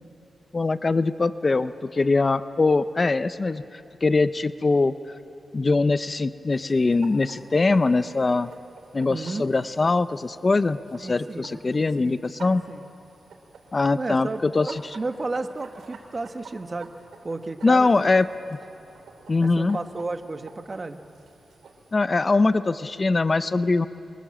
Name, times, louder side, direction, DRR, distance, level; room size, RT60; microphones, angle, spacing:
voice 1, 0.5-4.9 5.5-8.5 8.9-12.6 13.7-14.8 17.6-18.6 19.3-19.8 21.9-23.9, left 3 dB, 35° left, 13 dB, 0.6 m, -22 dB
sound 1, 6.5-21.9, right 4 dB, 85° right, 3.7 m, -50 dB
voice 2, 9.1-9.5 11.0-11.6 12.0-12.2 12.4-12.8 13.9-16.9 17.2-18.1 19.4-21.0, right 3 dB, 35° right, 7 dB, 1.4 m, -33 dB
26.5 x 24.0 x 7.6 m, 2.7 s
cardioid pair, 90°, 0 cm